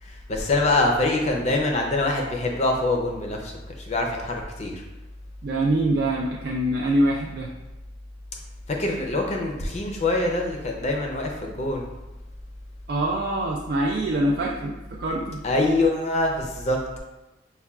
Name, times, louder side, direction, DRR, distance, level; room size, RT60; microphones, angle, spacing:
voice 1, 0.0-4.8 8.7-11.9 15.4-17.0, left 2 dB, 35° left, 1 dB, 0.5 m, -24 dB
voice 2, 5.4-7.5 12.9-15.4, right 1 dB, 55° right, -2 dB, 0.3 m, -24 dB
5.4 x 2.2 x 2.3 m, 1.0 s
head